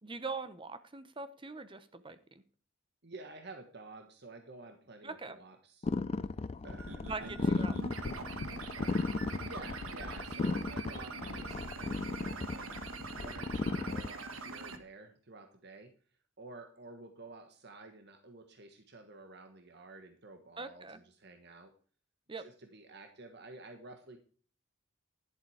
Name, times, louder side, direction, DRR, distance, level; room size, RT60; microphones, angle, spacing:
voice 1, 0.0-2.2 5.0-5.4 7.0-7.8 20.6-21.0 22.3-22.5, right 4 dB, 25° right, 12 dB, 0.8 m, -42 dB
voice 2, 3.0-5.9 6.6-7.6 8.7-15.9 16.4-21.7 22.4-24.2, right 2 dB, 55° right, 6 dB, 1.3 m, -51 dB
sound 1, 5.8-14.1, left 3 dB, 30° left, 0.4 m, -35 dB
sound 2, 6.8-14.8, right 3 dB, 85° right, 1.4 m, -44 dB
sound 3, 8.0-8.5, left 2 dB, 75° left, 1.0 m, -42 dB
11.0 x 7.5 x 4.8 m, 0.42 s
head